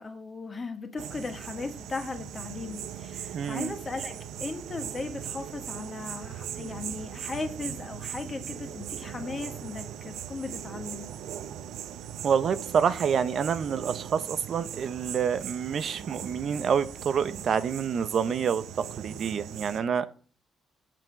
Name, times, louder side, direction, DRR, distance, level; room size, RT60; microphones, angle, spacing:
voice 1, 0.0-11.1, left 3 dB, 30° left, 6 dB, 1.9 m, -37 dB
sound 1, 1.0-19.8, right 9 dB, 85° right, 0.9 m, -39 dB
voice 2, 3.3-3.7 12.2-20.1, right 7 dB, 55° right, 13 dB, 0.7 m, -27 dB
7.5 x 5.9 x 6.4 m, 0.40 s
cardioid pair, 90°, 0 cm